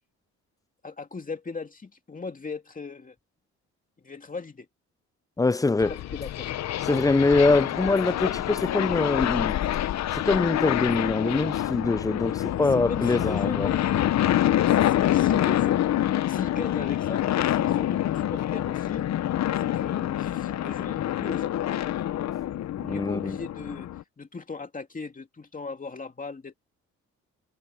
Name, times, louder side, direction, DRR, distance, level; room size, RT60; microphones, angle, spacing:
voice 1, 0.8-3.1 4.0-4.7 5.9-6.5 12.7-14.3 14.7-15.8 16.3-19.0 19.6-21.5 22.8-23.9 24.2-26.5, left 4 dB, 25° left, 2.6 m, -38 dB
voice 2, 5.4-5.9 6.9-9.6 10.1-13.7 22.8-23.4, left 3 dB, 10° left, 0.5 m, -24 dB
sound 1, 5.8-24.0, left 12 dB, 60° left, 0.8 m, -26 dB
cardioid pair, 90°, 30 cm